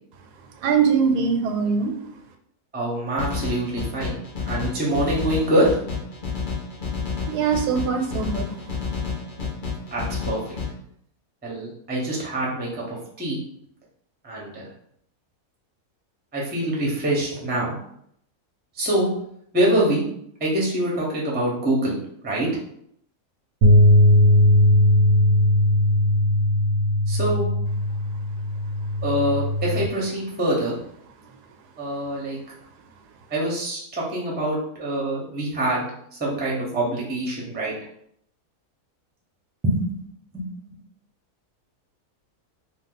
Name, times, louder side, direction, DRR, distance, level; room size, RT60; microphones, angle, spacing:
voice 1, 0.6-1.9 7.2-8.6, right 6 dB, 90° right, 5 dB, 1.1 m, -22 dB
voice 2, 2.7-4.2 4.5-5.7 9.9-10.4 11.4-13.4 14.2-14.7 16.3-17.7 18.8-19.1 19.5-20.1 20.4-22.0 22.2-22.5 27.1-27.5 29.0-30.8 31.8-32.4 33.3-35.9 36.2-37.7 39.6-40.0 40.3-40.5, right 1 dB, 10° right, -4 dB, 0.4 m, -25 dB
sound 1, 3.2-10.7, left 5 dB, 50° left, 0.6 m, -30 dB
sound 2, 23.6-29.9, left 1 dB, 65° right, 0.8 m, -18 dB
2.6 x 2.4 x 3.8 m, 0.69 s
omnidirectional pair, 1.7 m